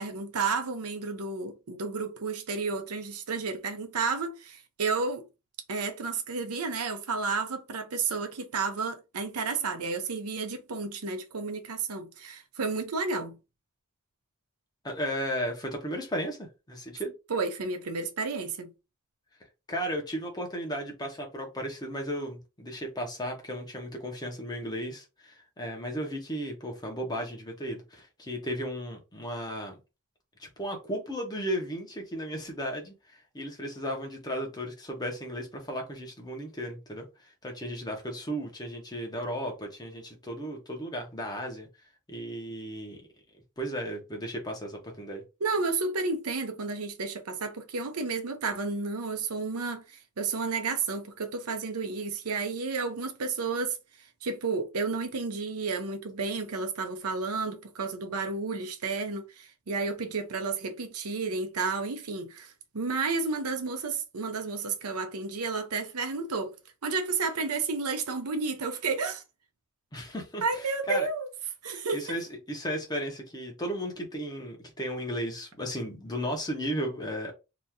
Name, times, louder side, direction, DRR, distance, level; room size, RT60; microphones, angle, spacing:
voice 1, 0.0-5.3 5.7-13.4 17.3-18.7 45.4-53.8 54.2-66.5 66.8-69.2 70.4-71.3 71.6-72.0, right 4 dB, 90° right, 0.7 m, -31 dB
voice 2, 14.8-17.1 19.7-29.7 30.4-41.7 42.1-43.1 43.6-45.2 69.9-70.4 70.9-71.1 71.7-77.3, equal, 20° left, 1.0 m, -35 dB
2.9 x 2.6 x 3.6 m
head